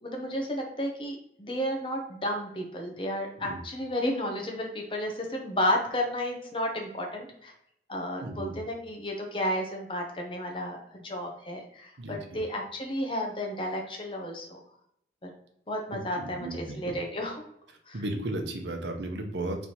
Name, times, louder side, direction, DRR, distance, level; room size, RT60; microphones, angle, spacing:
voice 1, 0.0-7.5 7.9-14.6 15.2-15.3 15.7-17.3 17.9-18.0, equal, 30° left, 1 dB, 0.7 m, -32 dB
voice 2, 8.2-8.5 12.0-12.2 15.9-16.8 17.9-19.7, right 1 dB, 85° right, 3 dB, 0.7 m, -34 dB
4.3 x 3.3 x 2.8 m, 0.74 s
head